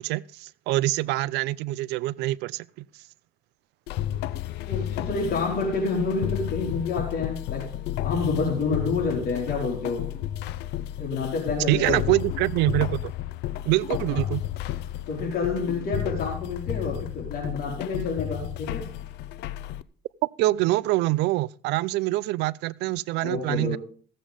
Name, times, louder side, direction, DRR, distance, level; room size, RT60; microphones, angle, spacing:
voice 1, 0.0-2.6 11.7-13.1 13.6-14.4 20.4-23.8, right 18 dB, 85° right, 0.5 m, -25 dB
sound 1, 3.9-19.8, left 12 dB, 85° left, 0.6 m, -32 dB
voice 2, 4.7-10.1 11.0-12.2 14.1-14.2 15.1-18.9 23.2-23.8, left 4 dB, 60° left, 4.0 m, -28 dB
15.5 x 7.6 x 5.1 m
cardioid pair, 110°, 17 cm